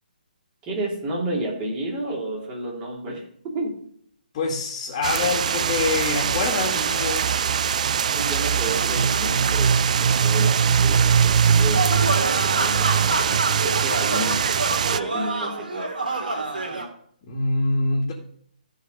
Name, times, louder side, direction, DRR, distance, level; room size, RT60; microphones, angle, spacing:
voice 1, 0.6-3.2 3.5-3.7 8.1-14.4 14.9-15.8, right 2 dB, 20° right, -3 dB, 3.6 m, -31 dB
voice 2, 4.3-7.3 17.2-18.1, left 3 dB, 35° left, 0 dB, 1.9 m, -25 dB
sound 1, 5.0-15.0, right 7 dB, 50° right, 0.4 m, -21 dB
sound 2, 11.7-16.9, right 2 dB, 70° right, 2.6 m, -27 dB
14.0 x 5.0 x 5.4 m, 0.64 s
figure-of-eight pair, 135°, 5 cm